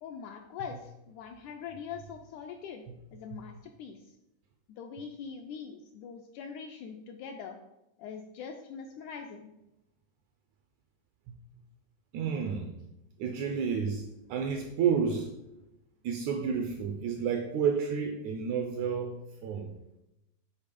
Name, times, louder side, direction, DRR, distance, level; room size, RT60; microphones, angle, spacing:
voice 1, 0.0-2.8 3.1-4.2 4.7-7.6 8.0-9.5, left 6 dB, 80° left, 4 dB, 1.7 m, -43 dB
voice 2, 12.1-12.7 13.2-15.3 16.0-19.2 19.4-19.7, right 6 dB, 80° right, 4 dB, 1.7 m, -30 dB
7.2 x 4.1 x 5.2 m, 0.90 s
omnidirectional pair, 3.9 m